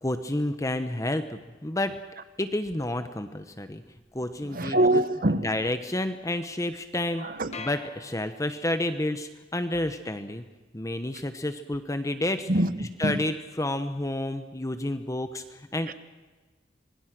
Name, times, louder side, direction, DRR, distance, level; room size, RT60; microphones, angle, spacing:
voice 1, 0.0-1.9 2.4-3.8 4.1-4.8 5.3-7.3 7.6-10.4 10.7-12.5 13.0-15.9, left 1 dB, 20° left, 1.0 m, -30 dB
voice 2, 4.5-5.5 7.2-7.6 12.5-13.3 15.9-16.0, right 1 dB, 55° right, 1.2 m, -25 dB
sound 1, 7.5-8.9, left 3 dB, 40° left, 2.0 m, -43 dB
26.0 x 22.0 x 6.1 m
head